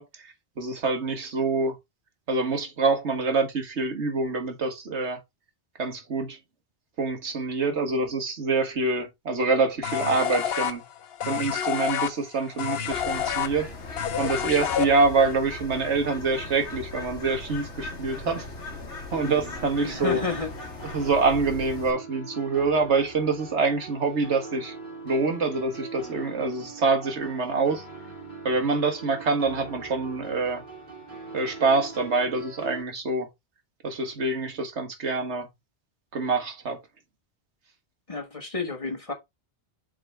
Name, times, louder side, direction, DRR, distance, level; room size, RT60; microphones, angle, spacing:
voice 1, 0.0-1.8 2.3-5.2 5.8-6.4 7.0-10.8 11.3-13.7 14.2-18.5 19.1-20.2 20.9-24.7 25.0-27.8 28.4-30.6 31.3-33.3 33.8-35.5 36.1-36.8, right 3 dB, 75° right, 1.7 m, -26 dB
sound 1, 9.8-15.3, left 9 dB, 65° left, 0.9 m, -28 dB
Bird, 12.9-21.9, left 3 dB, 80° left, 1.8 m, -38 dB
sound 2, 19.1-32.8, right 3 dB, 45° right, 3.4 m, -42 dB
voice 2, 19.8-20.5 38.1-39.1, left 3 dB, 30° left, 1.4 m, -30 dB
7.8 x 4.0 x 3.3 m
omnidirectional pair, 1.2 m